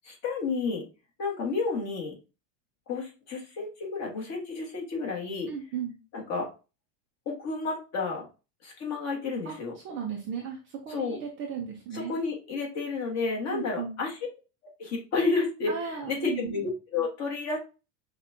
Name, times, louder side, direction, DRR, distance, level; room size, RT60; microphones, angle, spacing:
voice 1, 0.0-0.8 1.2-2.1 2.9-5.5 6.1-6.5 7.2-8.3 8.6-9.7 10.9-11.2 11.9-14.2 14.8-17.6, left 4 dB, 30° left, 0 dB, 1.5 m, -31 dB
voice 2, 5.5-5.9 9.4-12.1 13.5-14.0 15.7-16.5, right 7 dB, 25° right, 0 dB, 0.5 m, -36 dB
5.7 x 2.4 x 2.6 m, 0.30 s
supercardioid pair, 155°, 49 cm